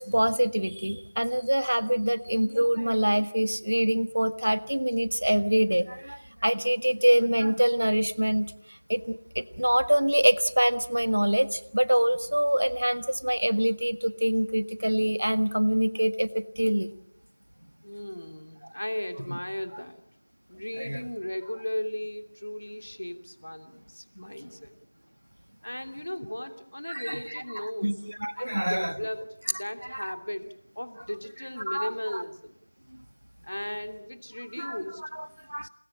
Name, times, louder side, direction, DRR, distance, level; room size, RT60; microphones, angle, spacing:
voice 1, 0.0-8.5 8.9-16.9 20.8-21.0 26.9-27.4 27.8-28.9 29.9-30.0 31.7-32.2 34.6-35.7, right 1 dB, 85° right, 12 dB, 1.5 m, -25 dB
voice 2, 17.8-20.0 20.5-24.8 25.6-28.0 28.3-30.5 30.8-32.6 33.4-35.0 35.6-35.7, left 1 dB, 80° left, 7 dB, 2.9 m, -36 dB
29.0 x 19.5 x 8.9 m, 0.71 s
figure-of-eight pair, 175°, 0 cm